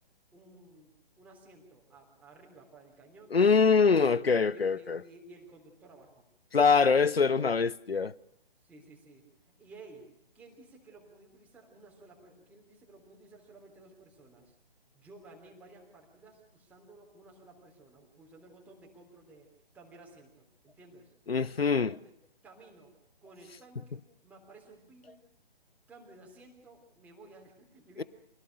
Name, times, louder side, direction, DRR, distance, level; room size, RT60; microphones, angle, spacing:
voice 1, 0.3-3.4 4.0-6.2 8.6-9.3 9.6-10.1 10.3-14.6 14.9-21.1 21.6-22.1 22.4-25.3 25.9-28.0, right 2 dB, 5° right, 3.5 m, -55 dB
voice 2, 3.3-5.0 6.5-8.1 21.3-21.9 28.0-28.1, left 5 dB, 85° left, 0.8 m, -24 dB
26.0 x 18.0 x 6.5 m
figure-of-eight pair, 140°, 29 cm